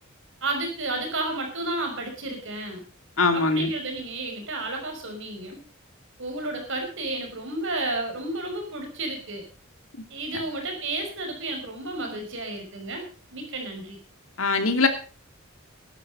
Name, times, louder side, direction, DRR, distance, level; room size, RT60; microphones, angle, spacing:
voice 1, 0.4-2.8 3.3-5.6 6.2-9.4 10.1-13.0 13.3-14.0, right 2 dB, 65° right, 3 dB, 5.7 m, -32 dB
voice 2, 3.2-3.7 14.4-14.9, left 3 dB, 80° left, 7 dB, 2.6 m, -21 dB
14.5 x 12.0 x 5.4 m, 0.37 s
head